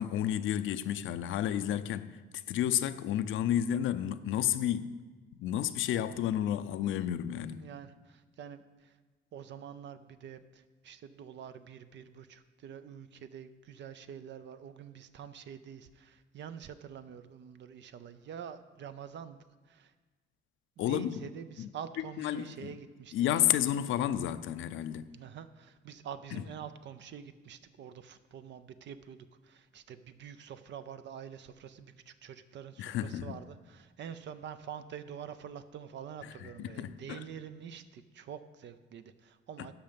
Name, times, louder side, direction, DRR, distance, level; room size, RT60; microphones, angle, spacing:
voice 1, 0.0-2.2 2.5-4.9 5.4-7.6 20.8-21.3 21.6-21.7 22.2-22.7 23.1-25.1 26.3-26.4 32.8-33.4 36.4-37.2 39.6-39.7, left 11 dB, 80° left, 0.5 m, -31 dB
voice 2, 7.4-9.0 9.3-19.4 19.6-19.9 20.9-23.4 25.1-39.7, right 8 dB, 65° right, 0.6 m, -46 dB
11.5 x 5.7 x 5.3 m
cardioid pair, 90°, 20 cm